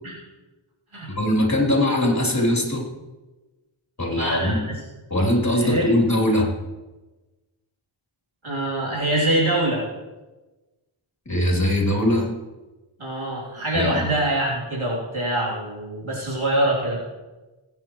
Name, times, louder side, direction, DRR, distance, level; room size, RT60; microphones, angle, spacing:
voice 1, 1.1-2.9 4.0-4.6 5.1-6.5 11.2-12.3 13.7-14.0, left 1 dB, 35° left, -2 dB, 3.5 m, -21 dB
voice 2, 4.1-4.7 5.6-5.9 8.4-9.8 13.0-17.0, right 1 dB, 75° right, -5 dB, 3.5 m, -24 dB
20.0 x 9.1 x 3.2 m, 1.1 s
wide cardioid pair, 45°, 49 cm